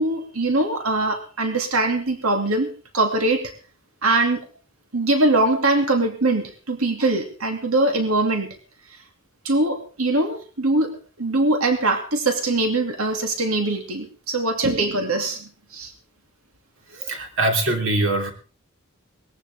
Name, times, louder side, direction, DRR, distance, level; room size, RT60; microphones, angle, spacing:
voice 1, 0.0-3.5 4.0-4.5 4.9-8.6 9.4-15.9, right 2 dB, 80° right, 4 dB, 2.7 m, -22 dB
voice 2, 16.9-18.3, right 2 dB, 60° right, 4 dB, 3.2 m, -22 dB
20.0 x 14.5 x 3.7 m, 0.38 s
head